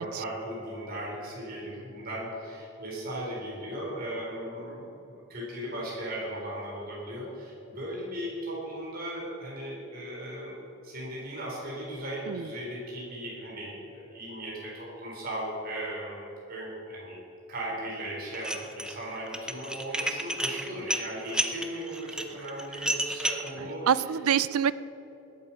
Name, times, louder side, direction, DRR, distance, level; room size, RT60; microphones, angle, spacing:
voice 1, 0.0-10.5 10.8-17.2 17.5-23.9, right 1 dB, 45° right, -4 dB, 3.9 m, -37 dB
Dishes pots and pans, 18.3-18.9 19.3-23.5, right 1 dB, 5° right, 0.6 m, -31 dB
voice 2, 23.6-24.7, right 8 dB, 90° right, 17 dB, 0.5 m, -26 dB
20.0 x 8.5 x 5.8 m, 3.0 s
head